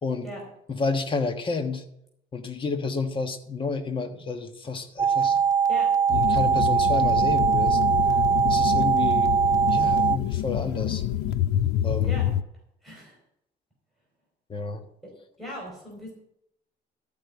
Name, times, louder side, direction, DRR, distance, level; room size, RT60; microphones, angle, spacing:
voice 1, 0.7-1.8 2.3-5.4 6.1-7.8 8.5-9.3 9.7-11.0 11.8-12.2 14.5-14.8, left 4 dB, 30° left, 7 dB, 1.4 m, -30 dB
sound 1, 5.0-10.2, right 7 dB, 20° right, 0.5 m, -21 dB
sound 2, 6.1-12.4, left 12 dB, 75° left, 0.6 m, -27 dB
voice 2, 12.8-13.2 15.4-16.1, equal, ahead, -2 dB, 4.8 m, -38 dB
14.0 x 5.4 x 8.2 m, 0.77 s
cardioid pair, 110°, 17 cm